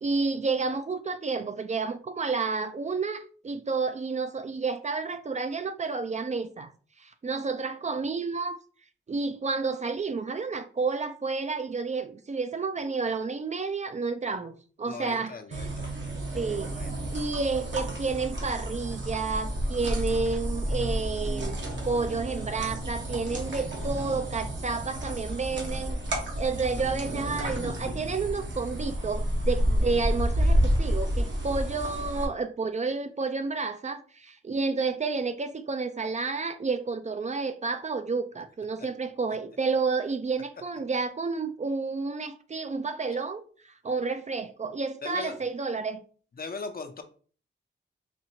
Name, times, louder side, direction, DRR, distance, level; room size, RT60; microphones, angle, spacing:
voice 1, 0.0-6.7 7.0-8.6 9.1-15.7 16.3-16.7 17.1-21.6 21.8-26.0 26.4-46.0, right 4 dB, 35° right, 0.4 m, -30 dB
voice 2, 14.9-15.9 16.6-17.2 45.0-45.4 46.4-47.0, left 4 dB, 50° left, 0.6 m, -39 dB
sound 1, 15.5-32.3, equal, 65° right, 1.2 m, -30 dB
4.3 x 2.5 x 2.8 m
wide cardioid pair, 80°, 20 cm